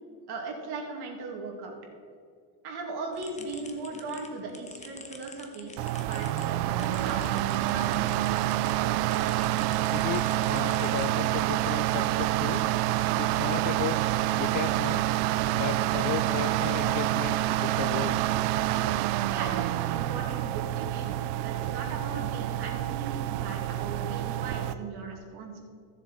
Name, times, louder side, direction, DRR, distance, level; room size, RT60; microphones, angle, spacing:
voice 1, 0.3-1.8 2.6-8.1 19.3-25.6, right 3 dB, 50° right, 1 dB, 2.6 m, -38 dB
sound 1, 3.1-8.7 9.1-11.5, left 3 dB, 15° left, 1.1 m, -48 dB
sound 2, 5.8-24.7, right 14 dB, 75° right, 0.6 m, -27 dB
voice 2, 9.9-12.7 13.2-14.0 14.3-15.0 15.5-18.2, left 10 dB, 40° left, 12 dB, 0.5 m, -35 dB
15.0 x 7.2 x 4.4 m, 2.2 s
supercardioid pair, 105°, 50 cm